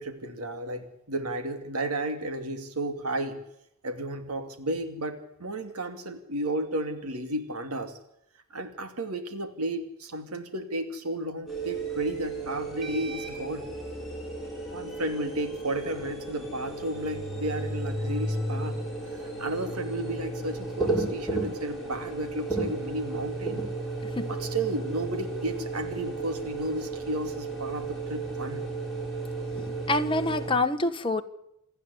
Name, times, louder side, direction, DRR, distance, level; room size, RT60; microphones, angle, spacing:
voice 1, 0.0-3.4 3.8-8.0 8.5-13.7 14.7-18.8 19.2-23.6 24.3-28.6, right 1 dB, 85° right, 8 dB, 2.6 m, -33 dB
sound 1, 11.5-30.5, right 2 dB, ahead, 6.3 m, -33 dB
voice 2, 29.5-31.2, left 2 dB, 25° left, 7 dB, 1.3 m, -27 dB
27.5 x 9.9 x 9.5 m, 0.80 s
head